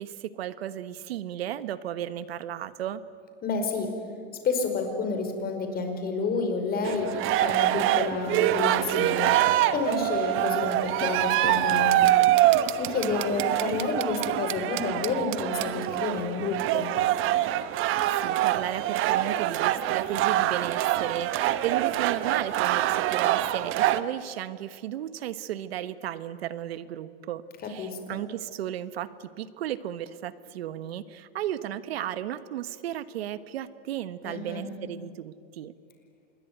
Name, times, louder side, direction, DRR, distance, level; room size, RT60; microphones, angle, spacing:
voice 1, 0.0-3.0 18.1-35.7, right 11 dB, 90° right, 14 dB, 1.3 m, -34 dB
voice 2, 3.4-3.9 4.4-9.4 9.7-12.0 12.8-16.9 27.6-28.2 34.2-34.6, left 4 dB, 30° left, 5 dB, 5.0 m, -30 dB
sound 1, 6.8-24.0, right 13 dB, 45° right, 1.1 m, -25 dB
26.5 x 21.5 x 9.3 m, 2.2 s
supercardioid pair, 125°, 30 cm